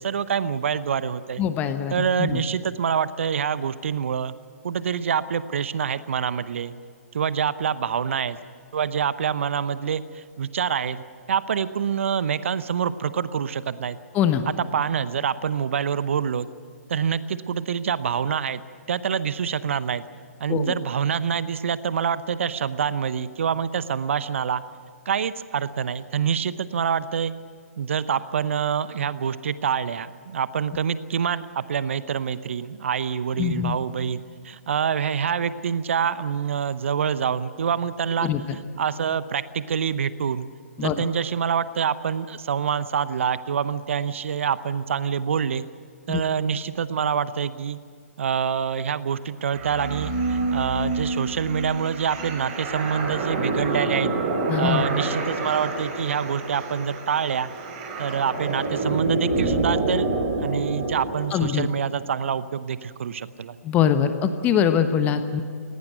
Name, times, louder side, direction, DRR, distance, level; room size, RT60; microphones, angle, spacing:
voice 1, 0.0-1.4 1.9-4.3 4.6-6.7 7.1-8.4 8.7-11.0 11.3-14.0 14.5-16.5 16.9-18.6 18.9-20.0 20.4-24.6 25.1-27.3 27.8-34.2 34.4-40.5 40.8-45.7 46.1-47.8 48.2-54.1 54.6-57.5 58.0-60.1 60.4-63.6, right 7 dB, 55° right, 15 dB, 0.8 m, -26 dB
voice 2, 1.4-2.4 14.1-14.5 20.5-20.7 33.4-33.8 38.2-38.4 40.8-41.0 46.1-46.2 54.5-54.9 61.3-61.7 63.6-65.4, left 9 dB, 20° left, 9 dB, 1.1 m, -23 dB
sound 1, 49.5-61.2, right 3 dB, 35° right, 4.8 m, -27 dB
19.0 x 17.5 x 9.3 m, 2.1 s
figure-of-eight pair, 130°, 8 cm